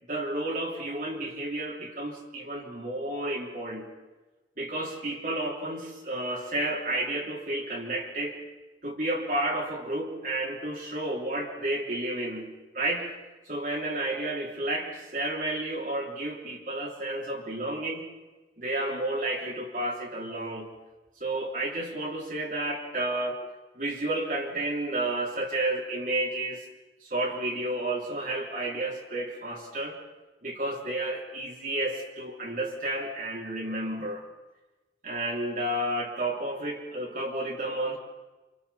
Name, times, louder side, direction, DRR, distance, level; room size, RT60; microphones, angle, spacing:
voice 1, 0.1-3.9 4.6-8.4 8.8-13.1 13.4-18.1 18.6-20.7 21.2-23.4 23.7-26.7 27.0-30.0 30.4-34.2 35.0-38.0, right 1 dB, 45° right, -1 dB, 3.2 m, -31 dB
29.0 x 26.5 x 4.2 m, 1.2 s
head